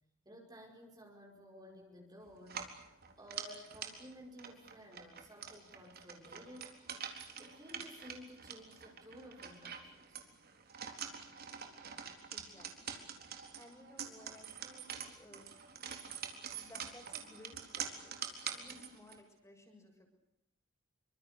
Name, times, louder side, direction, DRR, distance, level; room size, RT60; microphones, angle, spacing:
voice 1, 0.2-2.7 3.2-6.8 7.4-10.2, equal, 20° right, 0 dB, 5.1 m, -54 dB
sound 1, 2.4-19.2, right 7 dB, 50° right, 4.0 m, -46 dB
voice 2, 12.3-13.0 13.6-15.5 16.6-20.1, left 1 dB, 15° left, 3 dB, 7.0 m, -58 dB
27.5 x 25.5 x 6.9 m, 0.80 s
head